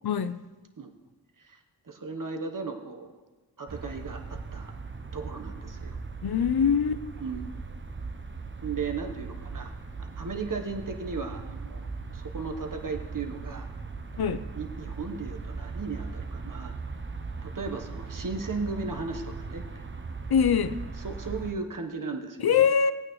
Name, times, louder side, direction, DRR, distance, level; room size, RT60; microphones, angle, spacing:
voice 1, 0.0-0.4 6.2-7.1 14.2-14.4 20.3-20.8 22.4-22.9, left 7 dB, 65° left, 13 dB, 0.6 m, -23 dB
voice 2, 1.8-3.2 3.6-4.7 5.1-6.0 7.2-7.6 8.6-9.7 10.0-13.7 14.5-16.8 17.4-19.6 21.0-22.7, right 4 dB, 50° right, 5 dB, 1.1 m, -36 dB
sound 1, 3.7-21.5, right 4 dB, 30° right, 0.6 m, -39 dB
16.5 x 8.8 x 3.1 m, 1.2 s
cardioid pair, 50°, 42 cm